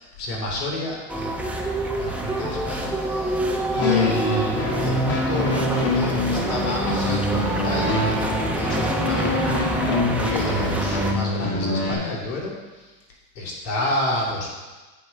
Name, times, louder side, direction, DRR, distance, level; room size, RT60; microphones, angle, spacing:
voice 1, 0.0-3.4 3.7-5.6 5.9-12.5 13.3-14.5, left 1 dB, 65° left, -3 dB, 2.9 m, -30 dB
sound 1, 1.1-11.1, right 1 dB, 5° right, 1.0 m, -27 dB
sound 2, 3.8-11.9, left 2 dB, 30° left, 2.0 m, -25 dB
8.5 x 5.2 x 5.8 m, 1.2 s
hypercardioid pair, 100°, 49 cm